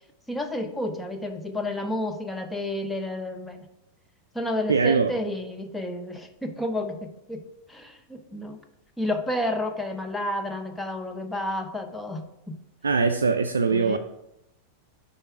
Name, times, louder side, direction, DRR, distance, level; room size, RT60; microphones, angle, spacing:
voice 1, 0.3-3.6 4.3-7.4 7.7-8.6 9.0-12.6 13.7-14.0, left 1 dB, 5° left, 5 dB, 0.7 m, -31 dB
voice 2, 4.7-5.1 12.8-14.0, right 4 dB, 70° right, 7 dB, 0.3 m, -22 dB
6.7 x 4.2 x 4.7 m, 0.84 s
figure-of-eight pair, 90°, 0 cm